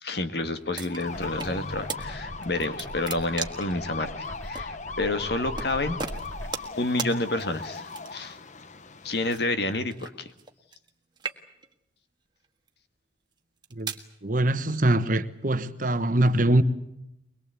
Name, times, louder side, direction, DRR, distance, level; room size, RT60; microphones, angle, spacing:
voice 1, 0.0-6.0 6.8-8.4 9.0-10.3, left 2 dB, 60° left, 1.9 m, -29 dB
sound 1, 0.8-1.5 1.9-2.0 2.4-3.7 4.6-4.7 5.6-5.7 6.0-6.7 7.0-7.1 7.9-8.3 9.3-10.9 11.2-11.7 12.4-12.7 13.4-14.1, right 5 dB, 25° right, 1.6 m, -36 dB
sound 2, 0.9-9.4, left 4 dB, 40° left, 1.0 m, -39 dB
sound 3, 1.1-6.5, equal, 15° left, 2.7 m, -42 dB
voice 2, 14.2-16.6, right 1 dB, 45° right, 1.2 m, -23 dB
23.0 x 22.0 x 8.3 m
head